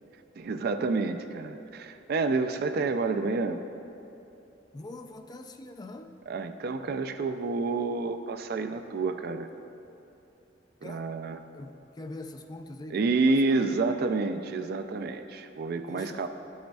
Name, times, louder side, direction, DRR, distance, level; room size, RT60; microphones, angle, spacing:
voice 1, 0.4-3.6 6.3-9.5 10.8-11.4 12.9-16.3, right 3 dB, 55° right, 8 dB, 0.4 m, -29 dB
voice 2, 4.7-6.2 10.8-11.2 11.5-13.8 15.9-16.3, left 2 dB, 20° left, 5 dB, 0.3 m, -43 dB
12.0 x 6.4 x 2.3 m, 2.8 s
head